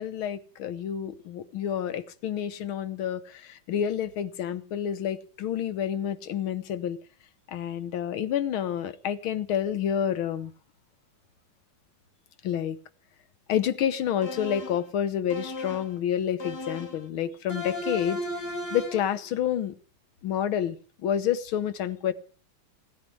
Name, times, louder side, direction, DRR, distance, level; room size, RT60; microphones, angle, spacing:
voice 1, 0.0-7.0 7.5-10.5 12.4-12.8 13.5-18.2 18.7-19.8 20.2-22.1, left 9 dB, 90° left, 1.9 m, -29 dB
sound 1, 14.2-14.9 15.3-16.0 16.4-17.1 17.5-19.1, left 1 dB, 55° left, 2.6 m, -35 dB
17.5 x 9.8 x 7.8 m
omnidirectional pair, 2.2 m